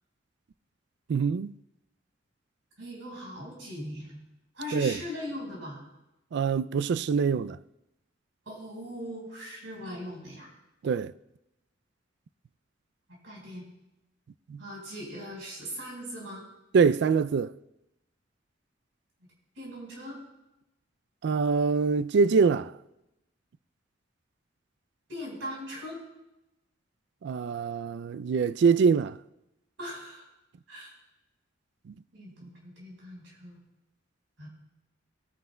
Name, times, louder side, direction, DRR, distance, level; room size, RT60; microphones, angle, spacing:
voice 1, 1.1-1.5 4.7-5.0 6.3-7.6 10.8-11.1 14.5-14.6 16.7-17.5 21.2-22.7 27.2-29.2 31.9-32.0, right 5 dB, 65° right, 0.3 m, -24 dB
voice 2, 2.8-4.2 4.5-5.8 8.4-10.5 13.1-13.6 14.6-16.4 19.5-20.2 25.1-26.0 29.8-30.2 30.7-30.9 32.1-33.6 34.4-34.5, equal, 85° right, 4.7 m, -40 dB
19.5 x 9.3 x 2.2 m
head